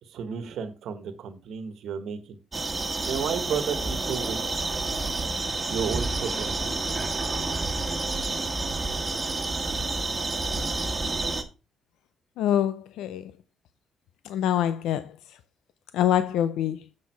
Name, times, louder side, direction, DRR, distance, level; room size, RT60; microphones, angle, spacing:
voice 1, 0.0-2.4 3.0-4.6 5.7-6.5, right 7 dB, 75° right, 1.4 m, -32 dB
sound 1, 2.5-11.4, right 3 dB, 25° right, 1.6 m, -29 dB
voice 2, 12.4-13.2 14.3-15.0 15.9-16.8, left 10 dB, 90° left, 0.5 m, -24 dB
7.4 x 6.2 x 4.5 m
cardioid pair, 90°, 0 cm